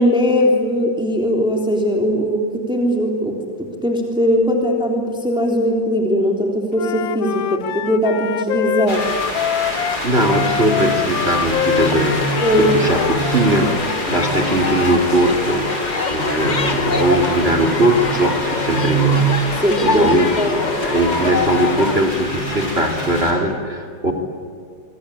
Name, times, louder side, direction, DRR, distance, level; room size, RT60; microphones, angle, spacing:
voice 1, 0.0-9.0 12.4-12.7 19.6-20.5, equal, ahead, 1 dB, 3.3 m, -19 dB
Wind instrument woodwind instrument, 6.7-13.8, left 9 dB, 85° left, 1.7 m, -24 dB
sound 1, 8.9-23.3, left 1 dB, 50° left, 6.4 m, -28 dB
voice 2, 9.7-24.1, right 2 dB, 30° right, 5 dB, 3.0 m, -19 dB
sound 2, 11.7-22.0, left 4 dB, 30° left, 1.0 m, -25 dB
26.0 x 25.5 x 8.6 m, 2.3 s
omnidirectional pair, 2.1 m